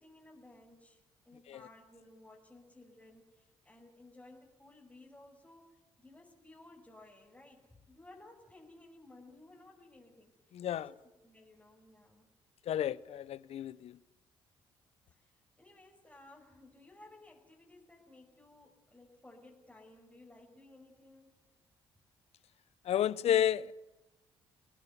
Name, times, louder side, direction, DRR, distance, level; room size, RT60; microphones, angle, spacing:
voice 1, 0.0-12.3 15.1-21.3, left 2 dB, 10° left, 5.9 m, -58 dB
voice 2, 10.5-10.9 12.7-14.0 22.8-23.7, left 10 dB, 60° left, 0.7 m, -31 dB
26.0 x 18.5 x 8.4 m
hypercardioid pair, 50°, 12 cm